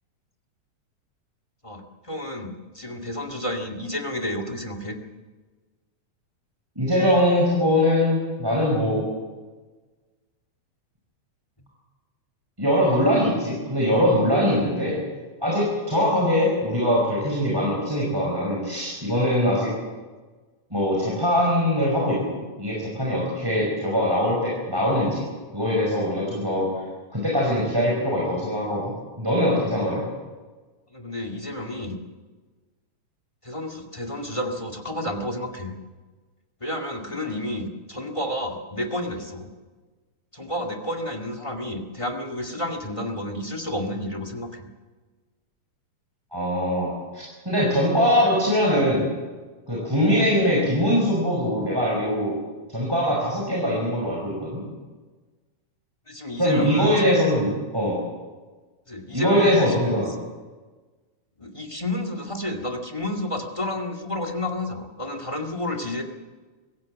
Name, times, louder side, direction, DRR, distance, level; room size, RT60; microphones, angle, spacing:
voice 1, 1.6-5.0 30.9-32.0 33.4-35.8 36.6-39.5 40.3-44.7 56.1-57.2 58.9-60.0 61.4-66.0, left 1 dB, 15° left, 6 dB, 1.5 m, -31 dB
voice 2, 6.7-9.0 12.6-15.0 15.4-19.7 20.7-25.2 25.5-26.7 27.1-28.8 29.2-30.0 46.3-49.1 49.7-52.3 52.7-54.6 56.4-58.0 59.1-60.1, equal, 5° right, -3 dB, 5.0 m, -22 dB
24.5 x 15.5 x 7.5 m, 1.3 s
omnidirectional pair, 3.5 m